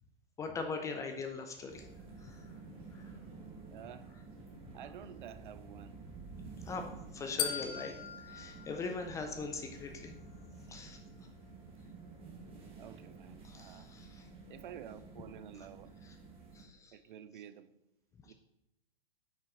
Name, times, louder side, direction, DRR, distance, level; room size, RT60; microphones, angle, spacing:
voice 1, 0.4-1.9 2.2-2.5 2.9-3.2 6.6-6.8 7.1-10.2 10.7-11.0 13.4-14.3 15.6-15.7 16.0-16.2 16.5-17.0 18.3-18.4, left 4 dB, 10° left, 0.4 m, -41 dB
sound 1, 1.7-16.6, right 4 dB, 20° right, 1.3 m, -51 dB
voice 2, 3.7-4.1 4.7-6.0 12.8-13.9 14.5-15.9 16.9-17.7 18.2-18.3, right 9 dB, 55° right, 0.5 m, -50 dB
sound 2, 7.4-9.6, left 8 dB, 65° left, 0.7 m, -40 dB
5.7 x 5.6 x 3.8 m
hypercardioid pair, 120°, 29 cm